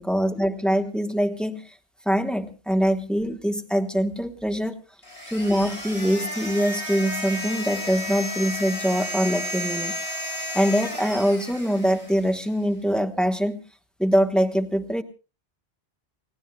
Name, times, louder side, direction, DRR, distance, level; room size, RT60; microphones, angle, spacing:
voice 1, 0.0-1.6 2.0-4.8 5.3-9.9 10.5-13.6 14.0-15.0, equal, ahead, 6 dB, 1.1 m, -23 dB
sound 1, 5.0-12.4, left 1 dB, 85° left, 7.4 m, -33 dB
29.5 x 18.0 x 2.3 m, 0.32 s
omnidirectional pair, 1.1 m